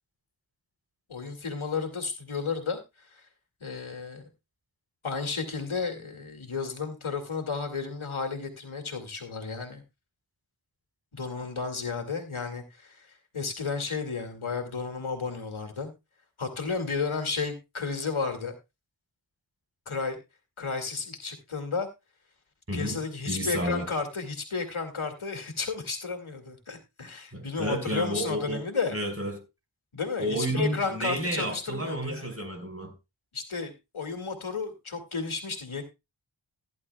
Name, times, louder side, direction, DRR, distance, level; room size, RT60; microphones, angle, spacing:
voice 1, 1.1-3.2 3.6-4.3 5.0-9.8 11.1-15.9 16.4-18.5 19.9-20.2 20.6-21.9 22.7-28.9 29.9-32.3 33.3-35.8, left 4 dB, 80° left, 2.4 m, -33 dB
voice 2, 22.7-23.0 23.3-23.9 27.3-29.4 30.2-32.9, right 1 dB, 30° right, 4.6 m, -31 dB
15.5 x 11.0 x 2.3 m
wide cardioid pair, 40°, 48 cm